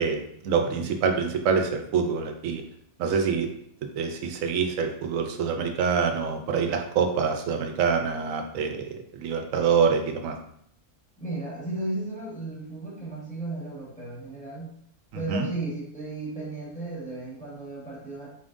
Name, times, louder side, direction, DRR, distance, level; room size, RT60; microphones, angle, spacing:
voice 1, 0.0-2.6 3.0-3.5 4.0-10.4 15.3-15.5, right 6 dB, 85° right, 5 dB, 1.0 m, -26 dB
voice 2, 11.2-14.8 15.1-18.3, right 2 dB, 5° left, -6 dB, 1.2 m, -34 dB
4.1 x 3.5 x 2.5 m, 0.68 s
omnidirectional pair, 1.3 m